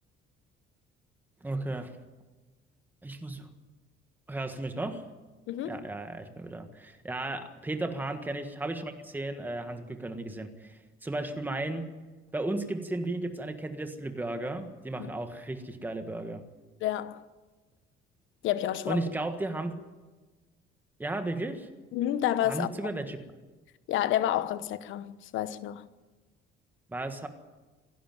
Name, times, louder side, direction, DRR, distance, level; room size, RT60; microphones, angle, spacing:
voice 1, 1.4-1.9 3.0-3.5 4.3-5.0 5.7-11.9 12.3-16.4 18.9-19.7 21.0-21.7 22.4-23.2 26.9-27.3, right 2 dB, 10° right, 1.5 m, -34 dB
voice 2, 5.5-5.9 15.0-15.1 16.8-17.2 18.4-19.1 21.9-22.7 23.9-25.9, left 12 dB, 70° left, 1.1 m, -29 dB
27.5 x 11.5 x 9.2 m
cardioid pair, 160°, 21 cm